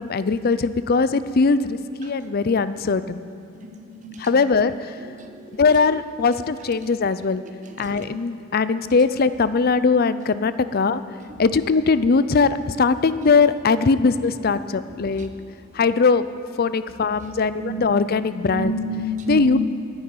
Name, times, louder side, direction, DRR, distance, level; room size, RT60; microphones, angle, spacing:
voice 1, 0.0-3.2 4.2-4.9 5.6-7.4 7.8-11.0 11.4-15.3 15.7-16.3 16.6-18.8 19.3-19.6, left 4 dB, 50° left, 14 dB, 0.5 m, -20 dB
voice 2, 3.6-4.3 5.2-5.5 7.7-8.0 10.8-11.0 15.2-15.3 17.2-18.2 18.5-19.6, right 1 dB, 40° right, 5 dB, 1.1 m, -31 dB
10.0 x 8.9 x 9.6 m, 2.8 s
head